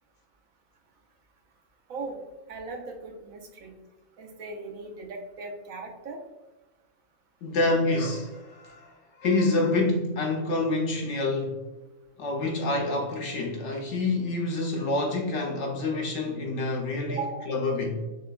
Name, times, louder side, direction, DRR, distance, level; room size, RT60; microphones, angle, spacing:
voice 1, 1.9-2.2 2.5-3.7 4.2-6.2 17.1-17.5, right 3 dB, 75° right, 1.1 m, -38 dB
voice 2, 7.4-8.9 9.2-11.6 12.2-17.2 17.5-18.0, left 2 dB, 65° left, 0.8 m, -27 dB
6.1 x 2.5 x 2.2 m
omnidirectional pair, 1.5 m